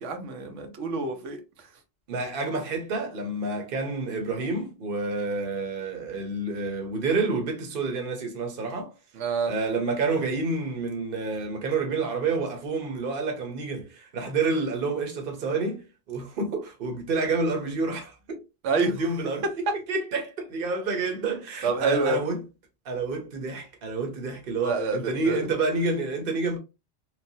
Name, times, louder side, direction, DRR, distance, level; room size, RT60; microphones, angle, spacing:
voice 1, 0.0-1.7 9.1-9.5 18.6-19.0 21.6-22.2 24.6-25.4, right 3 dB, 90° right, 1.0 m, -27 dB
voice 2, 2.1-8.9 9.5-18.4 19.0-19.4 19.9-22.4 22.8-26.6, right 3 dB, 55° right, 0.9 m, -29 dB
3.2 x 2.1 x 2.7 m
omnidirectional pair, 1.2 m